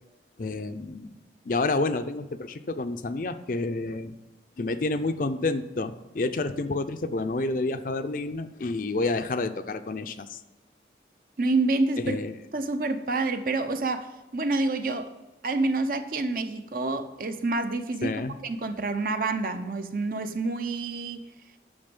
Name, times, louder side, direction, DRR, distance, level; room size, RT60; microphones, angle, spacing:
voice 1, 0.4-1.1 1.5-4.1 4.6-10.4 12.0-12.4 18.0-18.3, left 3 dB, 45° left, 10 dB, 0.5 m, -29 dB
voice 2, 11.4-12.2 12.5-15.1 15.4-21.3, right 3 dB, 50° right, 8 dB, 0.7 m, -28 dB
8.8 x 6.3 x 5.2 m, 1.1 s
head